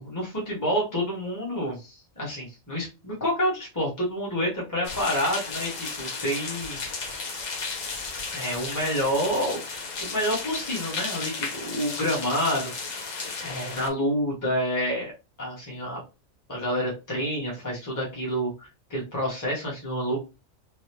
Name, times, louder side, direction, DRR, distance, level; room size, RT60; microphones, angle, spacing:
voice 1, 0.0-6.8 8.3-9.6 10.0-13.1 13.4-15.1 15.4-16.0 16.5-20.2, equal, 15° left, -3 dB, 1.0 m, -28 dB
sound 1, 4.8-13.9, left 4 dB, 50° left, 0.5 m, -34 dB
3.4 x 2.3 x 2.8 m, 0.27 s
omnidirectional pair, 1.4 m